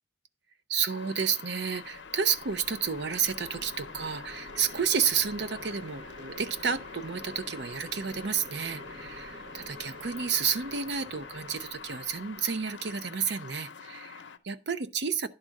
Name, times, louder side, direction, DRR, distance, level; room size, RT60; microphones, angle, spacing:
voice 1, 0.7-15.3, right 6 dB, 65° right, 0.6 m, -31 dB
sound 1, 0.9-14.4, left 5 dB, 85° left, 0.7 m, -46 dB
sound 2, 1.6-12.9, equal, 90° right, 1.9 m, -48 dB
10.5 x 3.7 x 6.3 m
head